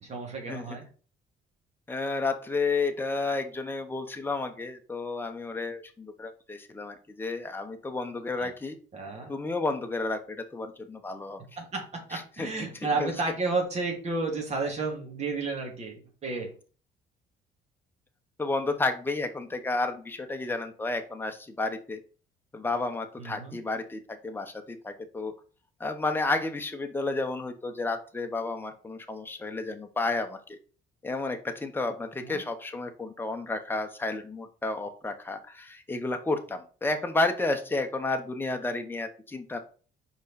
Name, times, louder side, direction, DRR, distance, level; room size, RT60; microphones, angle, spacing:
voice 1, 0.0-0.9 8.4-8.5 8.9-9.3 11.6-16.5 23.2-23.6 32.2-32.4, right 3 dB, 40° right, 1 dB, 2.4 m, -32 dB
voice 2, 1.9-8.8 9.3-11.4 12.1-12.5 13.0-13.1 18.4-22.0 22.5-25.3 25.8-30.6 31.0-39.6, left 3 dB, 10° left, 5 dB, 1.1 m, -31 dB
5.2 x 4.7 x 4.3 m, 0.38 s
cardioid pair, 110°, 17 cm